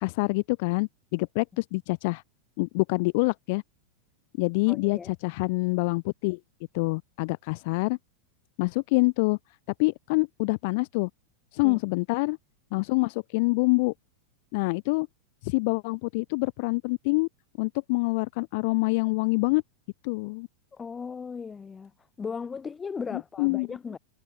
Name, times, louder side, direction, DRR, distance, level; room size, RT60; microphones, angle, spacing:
voice 1, 0.0-2.2 2.6-3.6 4.4-6.4 6.7-8.0 8.6-9.4 9.8-11.1 11.5-12.4 12.7-13.9 14.5-15.1 15.4-17.3 17.6-19.6 20.0-20.5 23.1-23.7, left 27 dB, 50° left, 1.4 m, -26 dB
voice 2, 4.7-5.1 11.6-11.8 20.8-21.9 22.2-24.0, left 5 dB, 15° left, 5.7 m, -37 dB
figure-of-eight pair, 90°, 0 cm